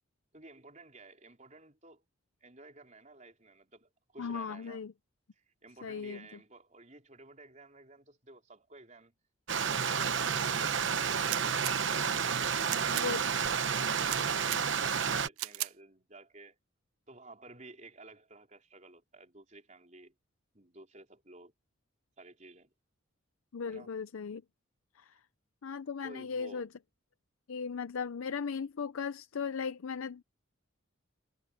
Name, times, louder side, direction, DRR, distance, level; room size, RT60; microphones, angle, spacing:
voice 1, 0.3-2.0 2.4-4.8 5.4-9.1 12.6-16.6 17.1-20.1 20.5-21.5 22.2-22.7 23.6-23.9 26.0-26.7, right 2 dB, 35° right, 4.6 m, -54 dB
voice 2, 4.2-4.9 5.8-6.3 12.9-13.2 23.5-24.4 25.0-25.2 25.6-26.7 27.5-30.2, left 5 dB, 75° left, 0.5 m, -37 dB
Stream, 9.5-15.3, right 6 dB, 60° right, 0.9 m, -30 dB
sound 1, 11.2-11.7 12.6-13.1 14.0-14.6 15.4-15.7, right 17 dB, 80° right, 0.4 m, -37 dB
head